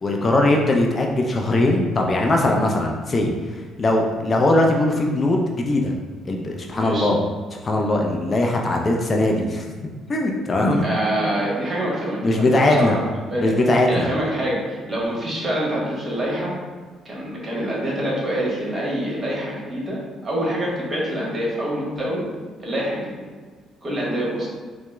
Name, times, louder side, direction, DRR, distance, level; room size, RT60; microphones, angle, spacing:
voice 1, 0.0-3.3 3.8-6.0 6.3-7.2 7.6-9.7 10.1-10.9 12.2-13.0 13.4-14.1, left 1 dB, 40° left, 1 dB, 0.4 m, -20 dB
voice 2, 6.7-7.1 10.7-13.0 13.3-13.5 13.9-16.5 17.0-22.2 22.6-23.2 23.8-24.5, right 1 dB, 35° right, -5 dB, 1.3 m, -26 dB
4.5 x 2.0 x 2.2 m, 1.5 s
supercardioid pair, 60°, 0 cm